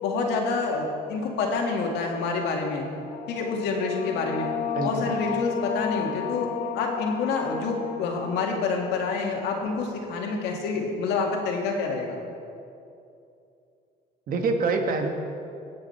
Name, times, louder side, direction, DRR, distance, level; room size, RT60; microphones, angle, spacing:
voice 1, 0.0-2.9 3.3-4.5 4.8-6.5 6.7-12.2, left 4 dB, 85° left, 0 dB, 2.0 m, -27 dB
sound 1, 2.8-10.1, left 9 dB, 55° left, 1.0 m, -34 dB
voice 2, 4.7-5.4 14.3-15.1, right 4 dB, 55° right, 4 dB, 1.5 m, -26 dB
18.5 x 7.7 x 4.4 m, 2.6 s
cardioid pair, 110°, 17 cm